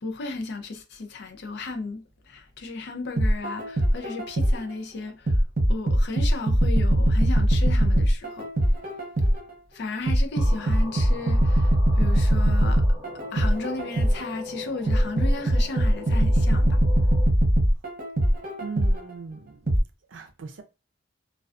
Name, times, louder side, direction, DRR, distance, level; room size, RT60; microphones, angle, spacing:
voice 1, 0.0-5.4 5.7-8.5 9.7-12.8 13.3-16.8, left 3 dB, 55° left, 0.5 m, -34 dB
sound 1, 3.2-4.7 5.3-9.5 10.1-14.3 14.9-19.1 19.7-19.8, right 1 dB, 45° right, 0.8 m, -21 dB
sound 2, 10.3-17.3, left 2 dB, 5° right, 0.8 m, -41 dB
voice 2, 18.6-19.6 20.1-20.6, right 5 dB, 65° right, 0.4 m, -38 dB
2.3 x 2.3 x 2.4 m
head